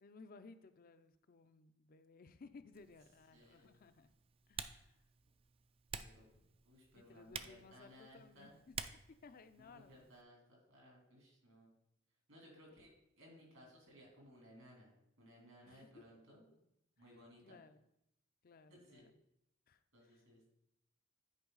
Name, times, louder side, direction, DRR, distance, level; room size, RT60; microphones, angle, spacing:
voice 1, 0.0-4.1 4.5-5.0 6.9-8.7 9.1-10.0 12.4-12.6 15.6-16.0 16.3-16.6 17.4-17.8 18.4-19.1 19.7-20.2, left 4 dB, 45° left, 12 dB, 0.4 m, -60 dB
Typing, 2.7-10.2, right 6 dB, 25° right, 0.3 m, -52 dB
voice 2, 3.3-3.8 5.9-6.3 6.6-8.6 9.6-11.7 12.3-14.9 15.2-16.5 17.0-17.6 18.7-19.1 19.9-20.5, equal, 80° right, -2 dB, 3.2 m, -61 dB
9.7 x 4.7 x 3.9 m, 0.81 s
head